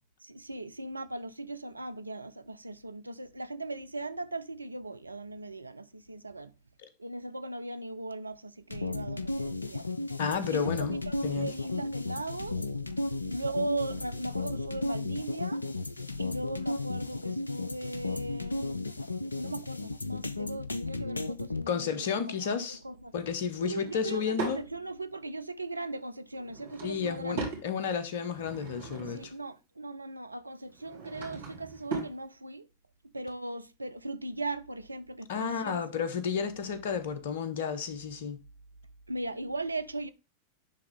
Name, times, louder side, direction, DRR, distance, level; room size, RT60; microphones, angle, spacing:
voice 1, 0.2-6.5 7.0-9.9 10.5-10.7 11.1-12.6 13.3-15.6 16.2-18.9 19.4-23.1 23.7-27.6 29.0-32.7 33.1-36.1 39.1-40.1, right 2 dB, 80° right, 0.4 m, -38 dB
sound 1, 8.7-21.6, left 2 dB, 80° left, 0.4 m, -34 dB
voice 2, 10.2-11.0 11.2-11.5 21.7-22.8 23.1-24.6 26.8-29.3 35.3-38.4, left 6 dB, 55° left, 0.9 m, -32 dB
Drawer open or close / Wood, 23.7-24.6 26.3-27.7 28.2-29.3 30.7-32.2, right 4 dB, 60° right, 2.2 m, -39 dB
10.5 x 3.6 x 3.3 m
figure-of-eight pair, 90°, 0 cm